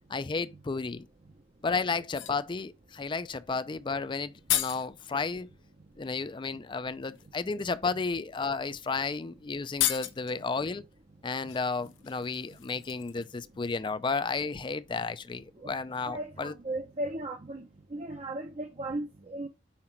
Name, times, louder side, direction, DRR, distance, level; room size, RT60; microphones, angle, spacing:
voice 1, 0.1-1.1 1.6-5.5 6.0-10.8 11.2-16.5, left 4 dB, 25° left, 0.4 m, -32 dB
sound 1, 1.1-1.2 2.0-2.4 3.9-4.0 4.2-4.9 6.3-6.4 7.0-7.3 8.1-8.2 8.6-8.8 9.0-9.1 9.6-10.4 11.5-13.5 13.8-13.9, left 13 dB, 85° left, 0.8 m, -34 dB
voice 2, 16.1-17.6 17.9-19.5, right 1 dB, 35° right, 0.6 m, -36 dB
5.8 x 4.9 x 4.4 m
head